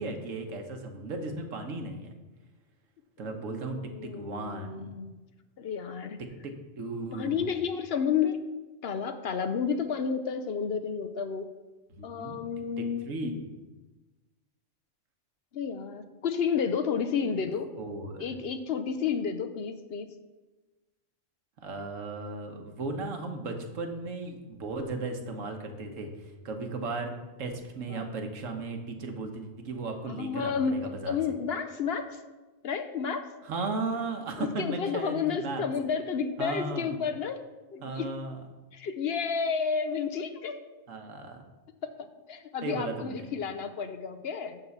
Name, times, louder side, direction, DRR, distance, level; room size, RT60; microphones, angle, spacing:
voice 1, 0.0-2.1 3.2-4.9 6.4-7.5 11.9-12.4 12.8-13.6 17.8-18.3 21.6-31.2 33.4-35.6 36.4-36.9 37.8-38.4 40.9-41.4 42.6-43.3, right 3 dB, 80° right, 4 dB, 1.5 m, -36 dB
voice 2, 3.2-5.2 5.6-6.2 7.1-8.4 8.8-11.5 12.0-13.4 15.5-17.7 18.2-20.1 27.9-28.1 30.1-32.2 32.6-33.3 34.4-37.4 37.7-38.1 38.7-40.6 42.0-44.6, left 6 dB, 60° left, 9 dB, 0.8 m, -31 dB
11.5 x 3.8 x 7.0 m, 1.2 s
omnidirectional pair, 1.3 m